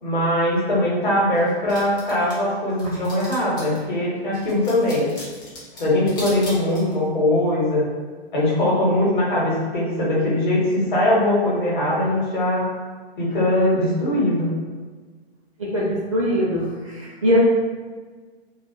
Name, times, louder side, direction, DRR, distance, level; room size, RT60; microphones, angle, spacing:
voice 1, 0.0-5.1 5.8-7.8 8.3-12.7 13.2-14.5, left 1 dB, 50° left, -5 dB, 0.9 m, -21 dB
sound 1, 1.3-3.8 4.3-7.1, left 1 dB, 20° left, 0.5 m, -39 dB
voice 2, 15.6-17.4, equal, 35° right, -5 dB, 0.4 m, -22 dB
2.4 x 2.3 x 2.3 m, 1.4 s
figure-of-eight pair, 125°, 32 cm